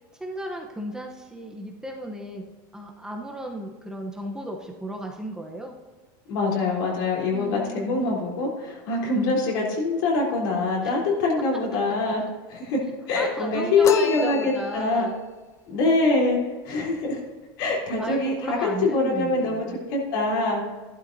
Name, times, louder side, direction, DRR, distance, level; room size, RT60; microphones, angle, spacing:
voice 1, 0.2-2.4 2.7-5.7 7.3-8.2 10.8-10.9 12.1-12.2 13.1-15.2 18.0-19.8, right 1 dB, 5° right, 1 dB, 0.8 m, -35 dB
voice 2, 6.3-12.2 12.5-15.1 15.7-16.4 16.6-17.2 17.6-20.6, left 3 dB, 75° left, -3 dB, 3.5 m, -24 dB
sound 1, 13.8-15.1, left 8 dB, 25° left, 0.4 m, -31 dB
13.5 x 11.5 x 2.7 m, 1.3 s
supercardioid pair, 150°, 11 cm